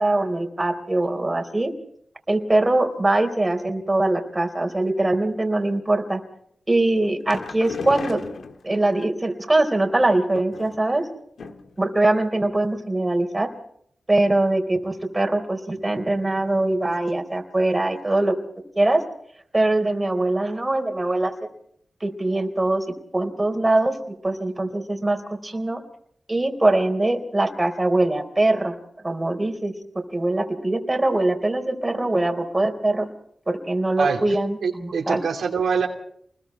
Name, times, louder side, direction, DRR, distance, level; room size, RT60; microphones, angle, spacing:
voice 1, 0.0-1.7 2.3-6.2 6.7-8.2 8.6-11.0 11.8-13.5 14.1-18.3 18.8-19.0 19.5-21.3 22.0-22.8 23.1-23.9 24.2-25.8 26.3-28.7 29.0-33.1 33.5-35.2, right 2 dB, 25° right, 4 dB, 3.8 m, -22 dB
sound 1, 6.9-9.0 10.0-11.0 11.4-11.8 12.1-12.2 12.5-12.6, left 4 dB, 80° left, 1.5 m, -36 dB
voice 2, 34.0-35.9, right 5 dB, 85° right, 2 dB, 2.8 m, -25 dB
28.5 x 21.0 x 4.4 m, 0.66 s
cardioid pair, 60°, 0 cm